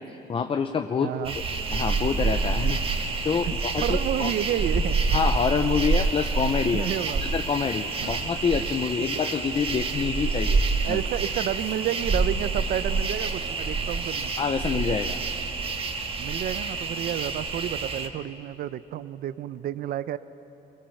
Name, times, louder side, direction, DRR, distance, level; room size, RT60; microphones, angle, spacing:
voice 1, 0.0-1.3 1.7-4.3 5.1-6.9 7.2-10.6 10.9-11.0 14.4-15.2, left 6 dB, 35° left, 7 dB, 0.8 m, -27 dB
voice 2, 1.0-1.3 3.4-5.0 6.7-7.4 8.0-8.3 10.8-14.3 16.2-20.2, right 11 dB, 65° right, 14 dB, 0.7 m, -30 dB
sound 1, 1.2-18.1, right 4 dB, 35° right, 1.7 m, -27 dB
23.5 x 21.0 x 7.2 m, 2.9 s
cardioid pair, 110°, 17 cm